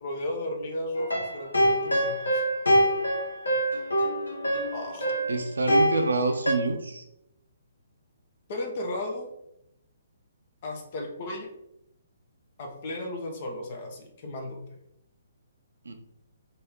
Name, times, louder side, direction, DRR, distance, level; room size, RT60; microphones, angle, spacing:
voice 1, 0.0-2.4 4.7-5.2 8.5-9.3 10.6-11.5 12.6-14.8, left 1 dB, 40° left, 1 dB, 1.0 m, -35 dB
sound 1, 0.9-6.5, equal, 80° left, 0.9 m, -25 dB
voice 2, 5.3-7.0 15.8-15.9, right 3 dB, 70° right, 6 dB, 0.6 m, -27 dB
3.4 x 2.7 x 4.3 m, 0.81 s
figure-of-eight pair, 130°, 0 cm